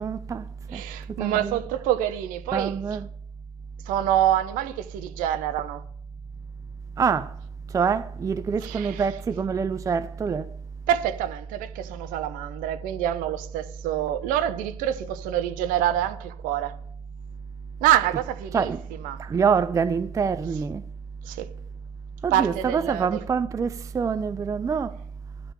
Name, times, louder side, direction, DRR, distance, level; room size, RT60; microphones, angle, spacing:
voice 1, 0.0-0.8 1.1-1.6 2.5-3.1 7.0-7.4 7.7-10.5 18.5-18.9 19.2-20.8 22.2-25.0, right 6 dB, 20° right, 0.4 m, -26 dB
voice 2, 0.7-2.7 3.9-5.8 8.6-9.0 10.9-16.7 17.8-18.7 19.0-19.2 21.2-21.5 22.3-23.2, right 11 dB, 55° right, 0.8 m, -26 dB
11.5 x 5.6 x 7.4 m
figure-of-eight pair, 60°, 16 cm